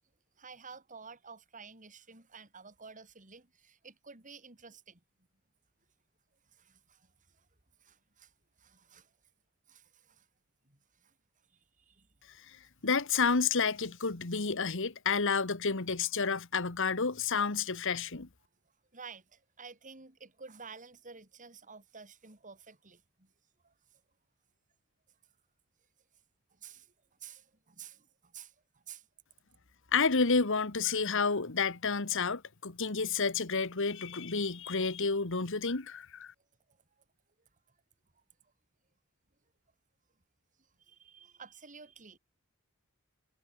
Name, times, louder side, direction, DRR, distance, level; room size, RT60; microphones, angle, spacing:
voice 1, 0.4-5.0 6.5-7.1 7.4-7.5 7.8-8.3 8.6-9.1 9.7-10.3 10.7-11.1 11.5-12.1 18.9-23.3 23.6-23.7 26.5-26.9 27.2-29.1 40.8-42.2, right 5 dB, 35° right, 3.6 m, -52 dB
voice 2, 12.8-18.3 29.9-36.3, left 5 dB, 60° left, 1.5 m, -30 dB
head